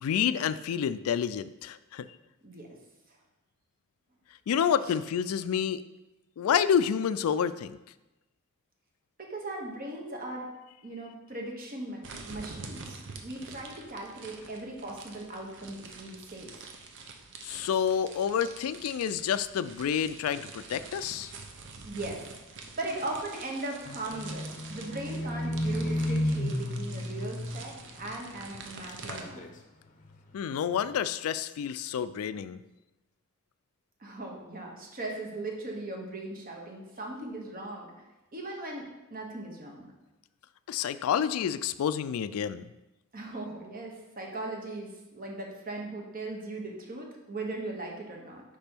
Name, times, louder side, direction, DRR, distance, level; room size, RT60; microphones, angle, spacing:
voice 1, 0.0-2.1 4.5-5.8 6.4-7.8 17.4-21.3 30.3-32.6 40.7-42.6, left 8 dB, 75° left, 15 dB, 0.3 m, -29 dB
voice 2, 9.2-10.5 10.8-16.7 21.8-22.2 22.8-29.4 34.0-38.1 38.3-39.9 43.1-48.4, right 2 dB, 40° right, 0 dB, 1.2 m, -39 dB
sound 1, 12.0-29.2, right 4 dB, 60° right, 0.7 m, -46 dB
Livestock farm animals working animals, 23.8-28.6 28.9-29.6 30.0-30.2, left 1 dB, 35° left, 0.6 m, -33 dB
5.3 x 5.0 x 4.4 m, 1.0 s
head